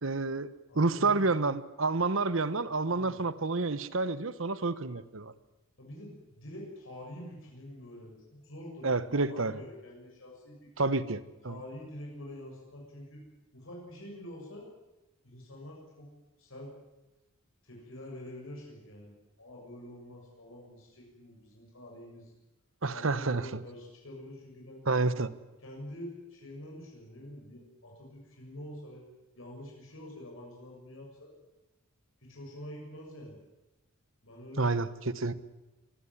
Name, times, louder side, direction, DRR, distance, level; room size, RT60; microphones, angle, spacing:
voice 1, 0.0-0.5 0.7-5.3 8.8-9.6 10.8-11.6 22.8-23.6 24.9-25.3 34.6-35.3, right 3 dB, 65° right, 1.1 m, -29 dB
voice 2, 0.7-1.6 2.8-3.2 5.8-10.7 11.5-13.2 13.5-14.7 15.2-16.1 16.4-16.7 17.6-22.3 22.9-24.8 25.6-29.1 29.4-31.3 32.2-33.4 34.2-34.8, left 1 dB, 70° left, 7.0 m, -46 dB
24.0 x 16.0 x 9.9 m
head